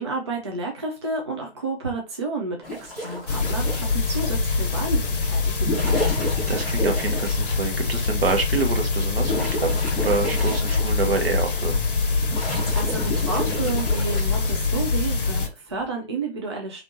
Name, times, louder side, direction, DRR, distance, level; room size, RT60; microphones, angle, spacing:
voice 1, 0.0-6.2 12.7-16.8, right 3 dB, 25° right, 1 dB, 0.3 m, -31 dB
sound 1, 2.6-4.4 5.5-7.6 8.2-8.3 8.8-11.3 11.7-14.4 15.6-15.9, left 1 dB, ahead, 0.8 m, -31 dB
sound 2, 3.3-15.5, left 4 dB, 55° left, 0.7 m, -24 dB
voice 2, 6.5-11.8, right 4 dB, 65° right, 3 dB, 1.0 m, -27 dB
3.2 x 2.6 x 2.6 m, 0.28 s
figure-of-eight pair, 135°, 32 cm